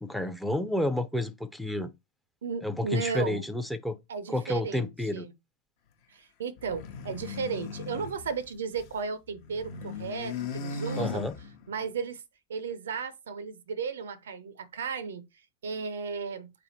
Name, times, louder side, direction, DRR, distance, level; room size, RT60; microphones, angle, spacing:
voice 1, 0.0-1.9 2.6-4.0 4.3-5.3 11.0-11.3, left 1 dB, ahead, 0.5 m, -30 dB
voice 2, 2.4-3.4 4.1-5.3 6.1-11.3 11.7-12.2 12.5-15.2 15.6-16.5, right 5 dB, 65° right, 0.5 m, -35 dB
sound 1, 6.6-9.0 9.3-11.8, left 5 dB, 50° left, 0.8 m, -38 dB
3.5 x 3.4 x 4.2 m
figure-of-eight pair, 90°, 0 cm